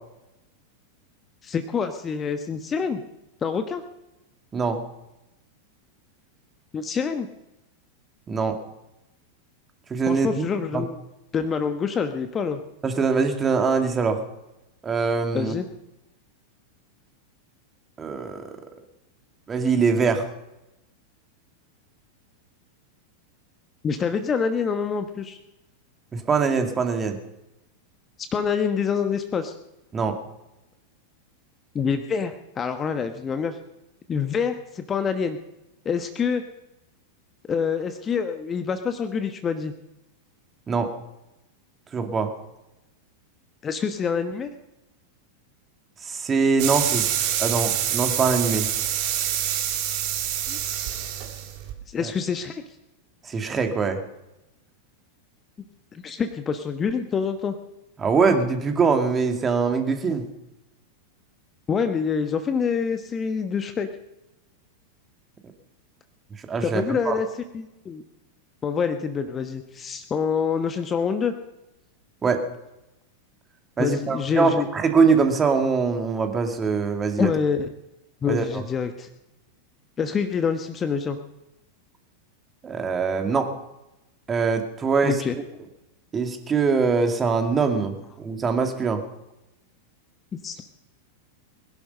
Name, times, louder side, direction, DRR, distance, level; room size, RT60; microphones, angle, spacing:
voice 1, 1.4-3.0 3.4-3.8 6.7-7.3 10.1-11.0 11.3-12.6 15.3-15.7 23.8-25.4 28.3-29.6 31.7-33.6 34.1-35.4 35.8-36.4 37.5-39.7 43.6-44.5 50.5-50.6 51.9-52.5 55.9-57.6 61.7-63.9 66.6-67.3 67.5-68.0 68.6-71.3 73.8-74.7 77.2-77.7 78.2-79.1 80.0-81.2 85.0-85.3 90.3-90.6, left 6 dB, 20° left, 8 dB, 1.1 m, -26 dB
voice 2, 9.9-10.4 10.7-10.8 12.8-14.2 14.8-15.5 18.0-18.4 19.5-20.2 26.1-27.2 29.9-30.2 40.7-40.9 41.9-42.3 46.0-47.1 47.4-48.7 52.0-52.1 53.3-54.0 58.0-60.2 66.5-67.1 72.2-72.4 73.8-77.3 78.3-78.5 82.6-83.5 84.3-85.2 86.1-89.0, right 5 dB, 20° right, 5 dB, 2.2 m, -23 dB
sound 1, 46.6-51.7, right 10 dB, 45° right, 2.2 m, -26 dB
21.0 x 11.5 x 5.5 m, 0.93 s
figure-of-eight pair, 90°, 0 cm